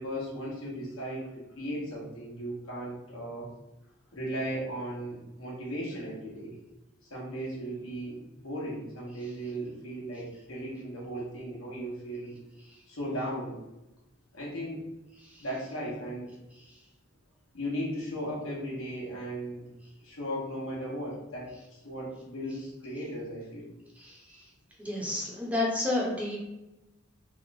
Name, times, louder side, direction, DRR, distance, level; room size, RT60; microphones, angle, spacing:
voice 1, 0.0-3.5 4.1-6.5 7.0-12.3 12.9-13.6 14.3-14.9 15.4-16.3 17.5-19.7 20.0-23.7, equal, 65° left, -4 dB, 1.4 m, -36 dB
voice 2, 24.0-24.4 24.8-26.4, left 2 dB, 5° right, -4 dB, 0.8 m, -31 dB
3.6 x 2.4 x 4.0 m, 0.98 s
head